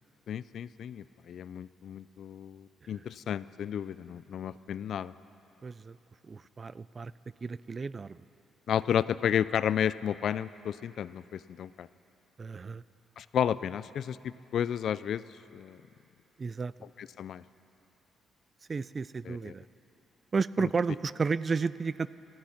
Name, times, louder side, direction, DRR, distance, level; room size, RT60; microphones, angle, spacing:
voice 1, 0.3-5.1 8.7-11.9 13.2-15.2 15.5-15.8 17.0-17.4 19.3-19.5, left 9 dB, 65° left, 17 dB, 0.3 m, -32 dB
voice 2, 5.6-6.0 6.2-7.1 7.4-8.2 12.4-12.8 16.4-16.7 18.7-19.6 20.3-22.1, right 4 dB, 35° right, 18 dB, 0.3 m, -32 dB
18.0 x 13.5 x 5.8 m, 3.0 s
cardioid pair, 90°, 0 cm